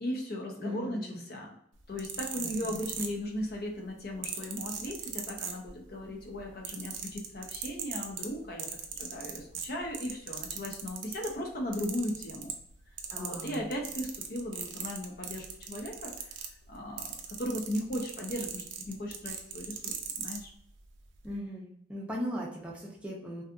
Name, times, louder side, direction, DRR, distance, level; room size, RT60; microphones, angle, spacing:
voice 1, 0.0-1.5 1.9-12.5 13.1-16.3 16.7-20.5, left 1 dB, 55° left, 0 dB, 0.6 m, -37 dB
voice 2, 0.6-1.3 2.4-2.9 13.1-13.7 21.2-23.4, equal, 5° right, -4 dB, 0.4 m, -39 dB
sound 1, 1.8-3.5 4.2-6.0 6.3-11.4 11.7-12.7 13.0-20.4 21.2-21.3, right 8 dB, 85° right, 0.4 m, -39 dB
2.7 x 2.3 x 2.4 m, 0.70 s
head